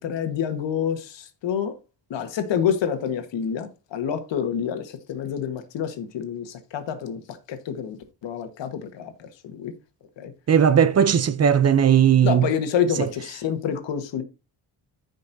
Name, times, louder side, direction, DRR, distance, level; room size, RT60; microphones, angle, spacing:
voice 1, 0.0-1.8 2.1-8.0 8.2-9.7 10.2-10.3 12.2-14.2, left 8 dB, 80° left, 1.4 m, -28 dB
voice 2, 10.5-12.4, right 8 dB, 35° right, 0.5 m, -17 dB
14.0 x 5.3 x 2.6 m
cardioid pair, 135°, 43 cm